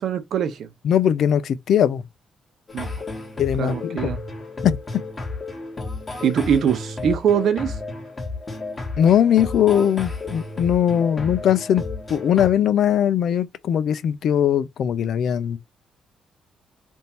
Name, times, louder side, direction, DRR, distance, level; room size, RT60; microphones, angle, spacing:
voice 1, 0.0-0.7 2.7-2.9 3.6-4.2 6.2-7.8, right 8 dB, 65° right, 0.9 m, -22 dB
voice 2, 0.8-2.0 3.4-4.0 4.6-4.8 9.0-11.8 12.1-15.6, left 9 dB, 65° left, 0.5 m, -20 dB
sound 1, 2.7-12.5, left 3 dB, 25° left, 1.7 m, -32 dB
3.6 x 2.6 x 4.3 m
cardioid pair, 90°, 0 cm